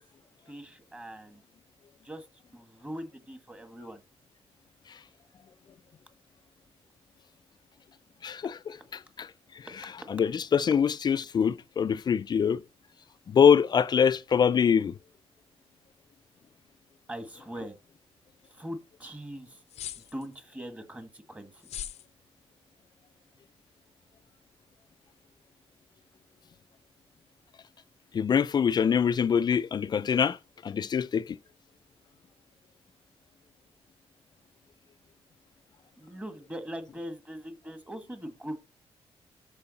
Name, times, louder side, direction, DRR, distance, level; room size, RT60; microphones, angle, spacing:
voice 1, 0.4-1.4 2.0-2.3 2.5-4.0 17.1-17.8 18.5-19.6 20.0-21.8 36.0-38.6, equal, 15° right, 1.6 m, -41 dB
voice 2, 8.2-8.8 9.2-9.3 9.6-9.7 10.1-12.6 13.3-14.9 28.1-30.4 30.6-31.4, left 7 dB, 40° left, 0.4 m, -24 dB
sound 1, 19.7-20.3 21.6-22.1, left 11 dB, 90° left, 0.7 m, -39 dB
13.5 x 4.6 x 4.1 m
cardioid pair, 120°, 11 cm